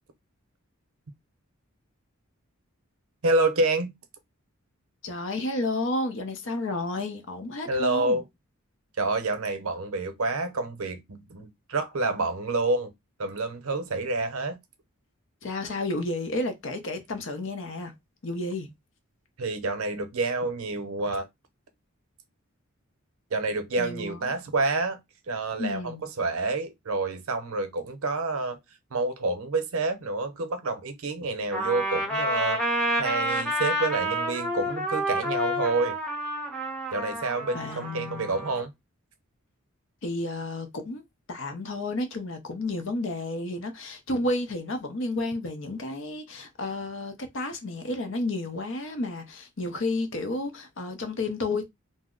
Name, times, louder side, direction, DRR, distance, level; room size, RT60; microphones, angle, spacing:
voice 1, 3.2-3.9 7.7-8.2 9.0-12.9 13.2-14.6 19.4-21.3 23.3-25.0 25.3-28.6 28.9-32.6 33.0-36.0 36.9-38.7, right 3 dB, 75° right, 0.7 m, -28 dB
voice 2, 5.0-8.2 15.4-17.9 18.2-18.7 23.8-24.2 25.6-26.0 37.5-38.3 40.0-41.0 41.3-51.6, left 2 dB, 60° left, 0.7 m, -31 dB
Trumpet, 31.5-38.6, equal, 5° left, 0.7 m, -29 dB
2.6 x 2.0 x 3.7 m
head